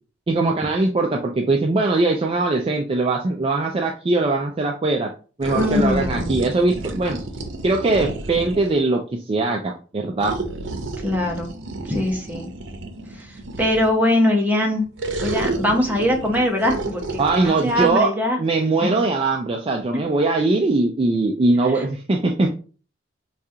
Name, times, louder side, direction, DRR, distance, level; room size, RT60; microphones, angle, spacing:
voice 1, 0.3-5.1 5.4-7.2 7.6-9.0 9.3-10.3 17.2-18.1 18.4-22.5, right 2 dB, 30° right, 2 dB, 0.4 m, -21 dB
sound 1, 5.4-8.8 10.2-14.0 15.0-17.9, right 2 dB, 85° right, 0.6 m, -31 dB
voice 2, 5.5-6.3 11.0-11.5 11.9-12.5 13.2-13.3 13.6-14.9 15.2-17.0 17.4-18.4 18.8-18.9 19.9-20.0 21.7-21.8, left 1 dB, 10° right, 1 dB, 0.7 m, -21 dB
4.7 x 2.4 x 2.7 m, 0.38 s
head